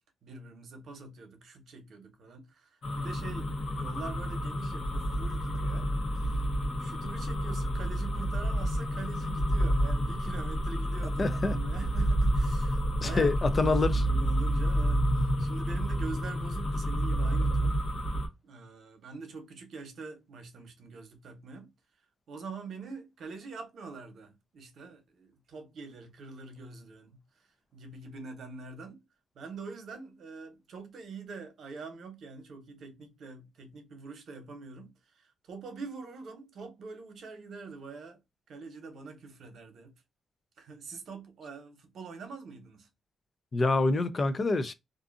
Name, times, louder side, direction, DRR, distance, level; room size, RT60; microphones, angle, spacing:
voice 1, 0.2-5.9 6.2-17.8 18.4-21.7 22.3-27.2 27.7-29.0 29.3-38.2 38.5-39.9 40.6-42.9, right 4 dB, 65° right, 0.9 m, -44 dB
sound 1, 2.8-18.3, equal, 55° left, 1.0 m, -29 dB
voice 2, 11.2-11.6 13.0-14.0 43.5-44.7, left 3 dB, 30° left, 0.4 m, -26 dB
2.5 x 2.4 x 2.4 m
cardioid pair, 140°, 0 cm